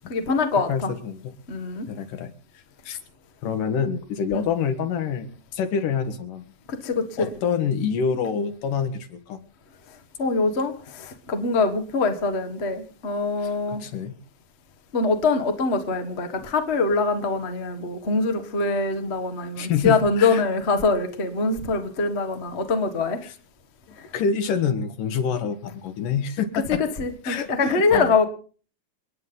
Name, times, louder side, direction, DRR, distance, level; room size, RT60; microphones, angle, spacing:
voice 1, 0.1-0.9 1.5-1.9 4.3-4.5 6.7-7.3 10.2-13.8 14.9-23.2 26.7-28.2, left 3 dB, 40° left, 0.9 m, -24 dB
voice 2, 0.6-1.3 1.8-2.3 2.9-3.0 3.4-6.4 7.2-9.4 13.4-14.2 19.6-20.4 23.2-23.4 24.1-26.8 27.2-28.2, left 6 dB, 70° left, 3.0 m, -27 dB
29.5 x 9.8 x 3.9 m
omnidirectional pair, 4.1 m